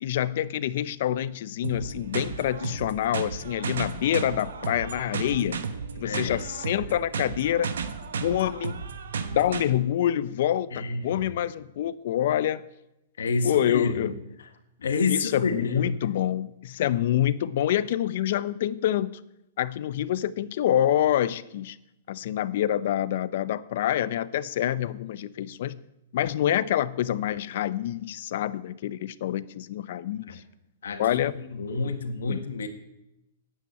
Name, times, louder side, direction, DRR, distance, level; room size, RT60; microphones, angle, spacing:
voice 1, 0.0-5.6 6.0-7.7 8.2-8.8 9.3-12.6 13.4-14.1 15.1-19.2 19.6-21.8 22.1-25.8 26.1-30.4 31.0-31.4 32.3-32.4, left 11 dB, 60° left, 17 dB, 0.7 m, -26 dB
sound 1, 1.6-9.6, right 5 dB, 85° right, 1.3 m, -34 dB
voice 2, 6.0-6.4 10.7-11.3 13.2-14.5 14.8-16.0 30.3-30.4 30.8-32.7, left 4 dB, 85° left, 6 dB, 1.8 m, -29 dB
10.0 x 8.7 x 8.7 m, 0.89 s
hypercardioid pair, 130°, 0 cm